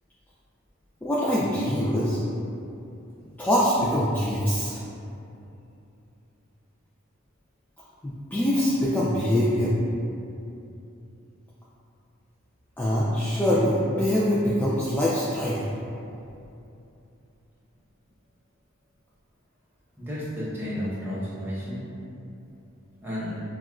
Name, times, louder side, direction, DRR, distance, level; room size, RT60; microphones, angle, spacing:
voice 1, 1.0-2.2 3.4-4.8 8.0-9.7 12.8-15.7, equal, 10° left, -8 dB, 0.3 m, -24 dB
voice 2, 20.0-21.9 23.0-23.4, equal, 10° right, -10 dB, 0.9 m, -32 dB
6.1 x 2.4 x 2.4 m, 2.7 s
head